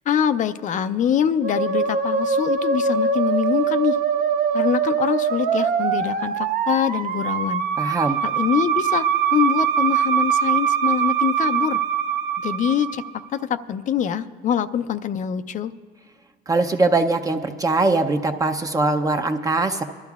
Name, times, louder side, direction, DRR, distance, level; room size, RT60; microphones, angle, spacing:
voice 1, 0.1-4.0 4.5-7.6 8.2-9.1 9.3-11.8 12.4-13.0 13.3-15.7, left 9 dB, 50° left, 12 dB, 0.4 m, -24 dB
Musical instrument, 1.4-13.2, right 7 dB, 55° right, 0.8 m, -22 dB
voice 2, 7.8-8.2 16.5-19.8, right 3 dB, 20° right, 5 dB, 0.6 m, -21 dB
24.0 x 12.5 x 2.4 m, 1.5 s
cardioid pair, 110°, 17 cm